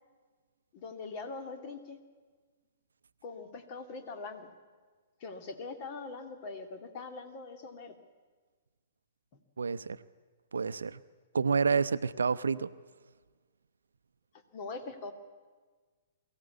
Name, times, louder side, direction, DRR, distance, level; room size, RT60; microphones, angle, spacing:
voice 1, 0.7-2.0 3.2-4.5 5.2-7.9 14.5-15.1, left 3 dB, 40° left, 7 dB, 2.4 m, -42 dB
voice 2, 9.6-10.0 10.5-11.0 11.3-12.7, right 5 dB, 75° right, 14 dB, 0.7 m, -29 dB
23.0 x 15.5 x 8.3 m, 1.4 s
figure-of-eight pair, 115°, 0 cm